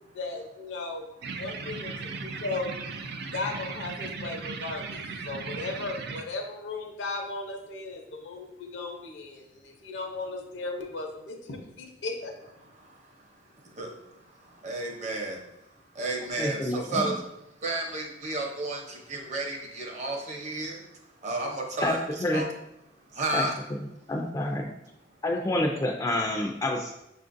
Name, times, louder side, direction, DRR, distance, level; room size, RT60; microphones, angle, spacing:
voice 1, 0.1-1.1 1.3-12.7, left 3 dB, 80° left, 2 dB, 0.7 m, -36 dB
sound 1, 1.2-6.2, right 4 dB, 60° right, 0.3 m, -37 dB
voice 2, 13.6-15.4 15.9-17.3 17.6-20.8 21.2-22.5 23.1-23.5, right 2 dB, 40° right, 1 dB, 0.7 m, -32 dB
voice 3, 16.4-17.1 21.8-22.4 23.3-23.5 24.1-24.7 25.2-26.9, left 1 dB, 20° left, 0 dB, 0.3 m, -28 dB
6.3 x 2.5 x 2.5 m, 0.86 s
head